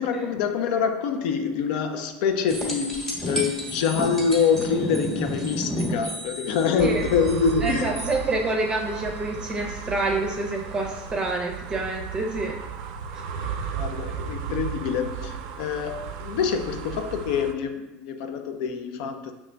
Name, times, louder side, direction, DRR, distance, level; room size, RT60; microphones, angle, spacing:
voice 1, 0.0-8.0 13.7-19.3, left 6 dB, 90° left, 7 dB, 0.4 m, -26 dB
sound 1, 2.5-8.1 11.1-11.2, equal, 10° left, 1.0 m, -32 dB
sound 2, 6.8-17.5, right 7 dB, 85° right, 0.4 m, -35 dB
voice 2, 7.6-12.5, right 2 dB, 20° right, 1 dB, 0.6 m, -27 dB
6.2 x 2.9 x 2.2 m, 0.96 s
cardioid pair, 150°, 4 cm